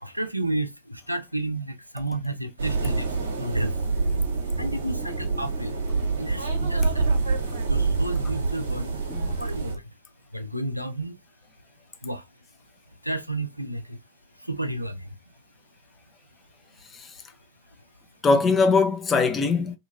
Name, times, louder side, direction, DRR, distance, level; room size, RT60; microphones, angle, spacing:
voice 1, 0.0-3.7 4.6-5.7 6.2-7.1 7.7-9.0 9.4-9.8 10.3-11.2 12.0-12.2 13.0-14.0 14.5-15.1, right 1 dB, 90° right, 0.4 m, -31 dB
sound 1, 2.6-9.8, right 3 dB, 65° right, 0.8 m, -26 dB
voice 2, 18.2-19.8, left 4 dB, 20° left, 0.6 m, -21 dB
2.7 x 2.7 x 2.4 m
figure-of-eight pair, 90°, 0 cm